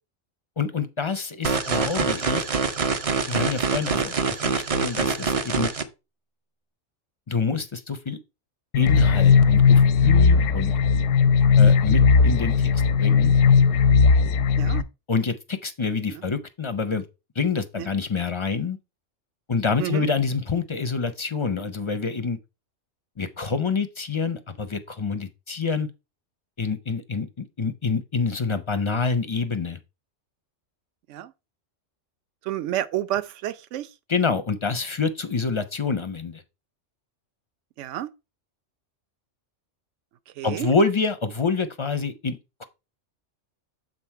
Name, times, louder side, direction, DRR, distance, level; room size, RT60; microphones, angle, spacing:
voice 1, 0.6-2.5 3.3-5.7 7.3-8.2 8.7-10.7 11.6-13.4 15.1-17.0 17.4-18.8 19.5-22.4 23.2-25.9 26.6-29.8 34.1-36.4 40.4-42.7, left 4 dB, 40° left, 0.4 m, -27 dB
sound 1, 1.4-5.8, right 5 dB, 40° right, 0.5 m, -25 dB
sound 2, 8.7-14.8, left 5 dB, 85° left, 0.9 m, -17 dB
voice 2, 32.5-33.9 37.8-38.1 40.4-40.7, right 13 dB, 75° right, 0.9 m, -29 dB
7.5 x 3.9 x 4.5 m
omnidirectional pair, 1.3 m